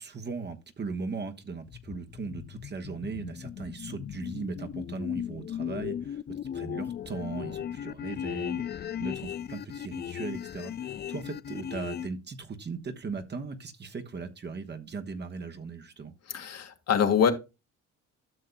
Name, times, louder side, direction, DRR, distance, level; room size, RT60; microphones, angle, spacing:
voice 1, 0.0-6.2 6.5-16.1, right 4 dB, 35° right, 1.2 m, -38 dB
sound 1, 1.7-12.1, left 9 dB, 35° left, 0.4 m, -36 dB
voice 2, 16.3-17.3, left 7 dB, 55° left, 1.6 m, -24 dB
12.0 x 6.5 x 2.2 m
cardioid pair, 90°, 30 cm